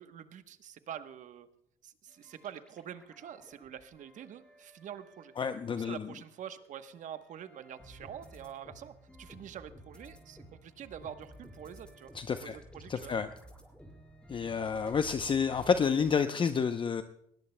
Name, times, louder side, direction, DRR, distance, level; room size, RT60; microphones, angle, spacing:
voice 1, 0.0-1.5 1.8-5.3 5.7-12.1 12.4-13.2, right 9 dB, 60° right, 10 dB, 1.0 m, -46 dB
sound 1, 2.1-6.2 6.6-16.1, equal, 5° left, 4.2 m, -54 dB
voice 2, 5.4-6.0 12.1-12.6 12.9-13.3 14.3-17.0, left 6 dB, 35° left, 9 dB, 0.6 m, -29 dB
20.0 x 17.0 x 2.2 m, 0.74 s
supercardioid pair, 80°, 14 cm